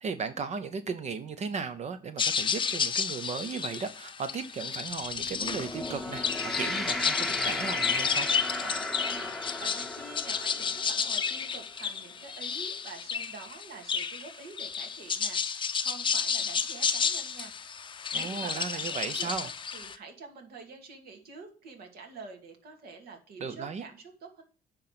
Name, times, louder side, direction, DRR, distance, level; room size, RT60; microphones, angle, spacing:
voice 1, 0.0-8.3 18.1-19.5 23.4-23.8, right 5 dB, 40° right, 0.7 m, -36 dB
sound 1, 2.2-20.0, left 6 dB, 30° left, 0.6 m, -31 dB
sound 2, 5.1-11.6, left 1 dB, ahead, 1.0 m, -36 dB
voice 2, 8.6-17.5 18.1-24.4, right 4 dB, 65° right, 2.5 m, -47 dB
10.0 x 3.9 x 5.9 m
cardioid pair, 110°, 17 cm